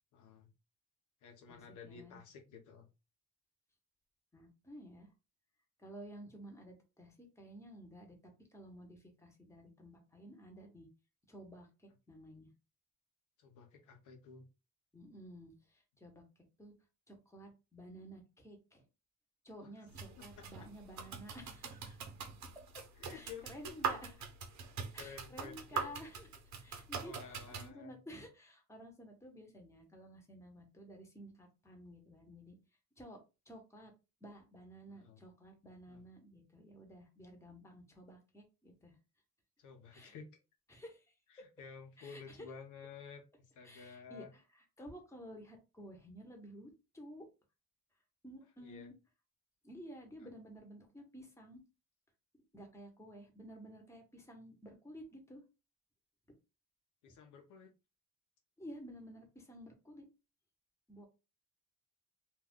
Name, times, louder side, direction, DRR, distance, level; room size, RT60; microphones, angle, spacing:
voice 1, 0.1-0.5 1.2-2.9 13.4-14.5 19.6-19.7 20.4-20.5 23.0-23.7 24.6-26.0 27.0-28.0 34.9-35.2 35.9-36.0 39.6-40.3 41.3-43.2 43.5-44.3 48.6-48.9 57.0-57.7, left 5 dB, 85° left, 2 dB, 0.9 m, -52 dB
voice 2, 1.8-2.2 4.3-5.1 5.8-8.2 8.5-10.9 11.3-12.5 14.9-16.2 16.6-16.7 17.1-18.8 19.4-22.1 22.7-22.8 23.1-24.0 24.9-26.3 26.6-32.6 33.0-33.2 33.4-33.9 34.2-39.0 39.9-40.1 40.7-41.1 42.0-42.5 43.6-47.3 48.2-48.9 49.6-51.6 52.5-55.4 58.6-60.1 60.9-61.1, equal, 10° left, 2 dB, 1.1 m, -53 dB
sound 1, 19.9-27.7, right 6 dB, 65° right, 0.8 m, -43 dB
2.6 x 2.3 x 3.6 m, 0.28 s
cardioid pair, 90°, 30 cm